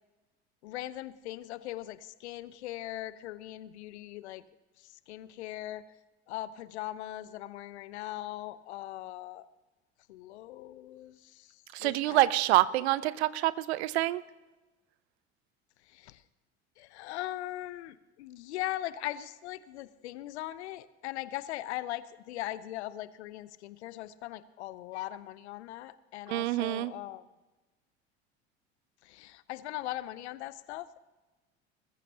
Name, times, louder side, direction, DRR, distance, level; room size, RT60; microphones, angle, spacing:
voice 1, 0.6-4.4 5.1-5.9 6.3-9.5 10.1-12.3 15.9-16.2 16.8-27.2 29.0-31.0, left 15 dB, 70° left, 17 dB, 0.7 m, -40 dB
voice 2, 11.7-14.2 26.3-26.9, right 16 dB, 65° right, 19 dB, 0.7 m, -27 dB
20.5 x 14.5 x 2.9 m, 1.2 s
figure-of-eight pair, 70°, 35 cm